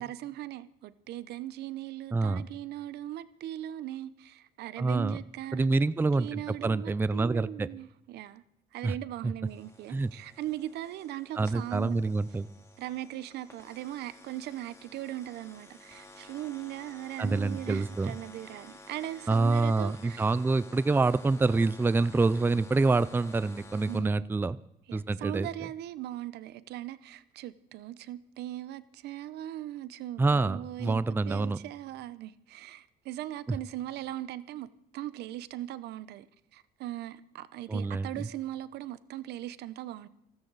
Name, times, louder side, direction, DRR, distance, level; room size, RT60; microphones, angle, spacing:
voice 1, 0.0-5.9 6.2-8.4 8.7-12.1 12.8-20.2 23.9-24.3 24.9-34.7 34.9-36.3 36.5-40.1, right 13 dB, 75° right, 0.9 m, -39 dB
voice 2, 2.1-2.4 4.8-5.2 5.5-7.7 8.8-8.9 9.2-9.3 9.9-10.1 11.4-12.5 17.2-18.1 19.3-24.6 24.9-25.5 30.2-31.6 33.5-33.6 37.7-38.3, right 3 dB, 10° right, 0.5 m, -27 dB
sound 1, 9.5-24.0, left 2 dB, 15° left, 2.7 m, -52 dB
26.5 x 13.0 x 4.1 m
cardioid pair, 110°, 17 cm